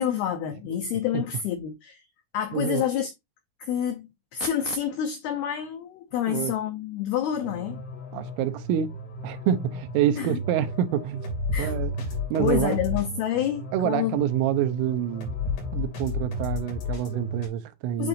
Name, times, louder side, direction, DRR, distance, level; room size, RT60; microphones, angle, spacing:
voice 1, 0.0-2.0 2.3-3.1 3.6-7.8 10.2-10.4 11.5-11.7 12.4-14.2 18.0-18.1, left 9 dB, 90° left, 2.2 m, -28 dB
voice 2, 2.5-2.8 6.3-6.5 8.1-8.9 9.2-11.2 11.6-12.8 13.7-15.4 15.7-18.1, right 10 dB, 85° right, 3.3 m, -27 dB
sound 1, 7.3-17.5, left 2 dB, 55° left, 4.6 m, -33 dB
10.0 x 3.9 x 2.6 m
omnidirectional pair, 5.6 m